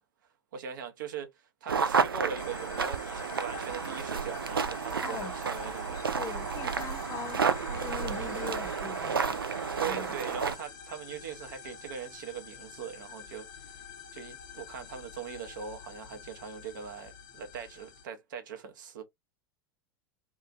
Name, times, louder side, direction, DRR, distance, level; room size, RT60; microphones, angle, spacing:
voice 1, 0.5-6.0 9.8-13.8 14.1-19.0, right 7 dB, 60° right, 0.8 m, -40 dB
sound 1, 1.7-10.5, right 5 dB, 80° right, 0.4 m, -31 dB
sound 2, 2.4-18.0, left 7 dB, 55° left, 0.9 m, -48 dB
voice 2, 5.0-5.4 5.9-9.3 9.9-10.2, left 7 dB, 30° left, 0.7 m, -42 dB
2.8 x 2.5 x 2.4 m
figure-of-eight pair, 85°, 12 cm